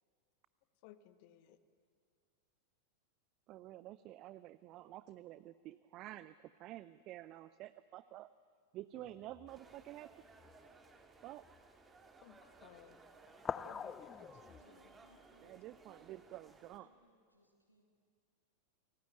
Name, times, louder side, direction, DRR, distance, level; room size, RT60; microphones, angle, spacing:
voice 1, 0.8-1.6 12.2-13.0 13.7-14.4 14.6-14.9, left 12 dB, 45° left, 12 dB, 1.3 m, -60 dB
voice 2, 3.5-8.3 8.7-10.1 11.2-11.5 15.4-16.9, right 15 dB, 35° right, 16 dB, 0.5 m, -50 dB
sound 1, 9.0-9.8 10.3-10.6 11.4-11.6 13.3-14.6, left 6 dB, 20° left, 0.6 m, -45 dB
sound 2, 9.5-16.8, right 3 dB, 15° right, 2.3 m, -61 dB
voice 3, 14.3-15.7 16.8-17.8, left 1 dB, 90° left, 1 dB, 2.9 m, -69 dB
29.0 x 19.0 x 9.0 m, 2.1 s
figure-of-eight pair, 90°, 0 cm